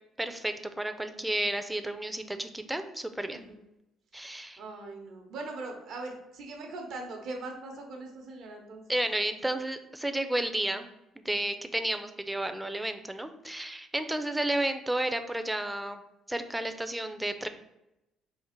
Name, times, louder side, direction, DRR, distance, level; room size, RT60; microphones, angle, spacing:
voice 1, 0.2-3.4 4.1-4.6 8.9-10.9 11.2-16.0 16.3-17.5, right 1 dB, 10° right, 8 dB, 0.4 m, -32 dB
voice 2, 3.3-3.6 4.1-8.8, right 2 dB, 70° right, 2 dB, 0.9 m, -41 dB
3.7 x 2.4 x 4.3 m, 0.89 s
cardioid pair, 90°, 0 cm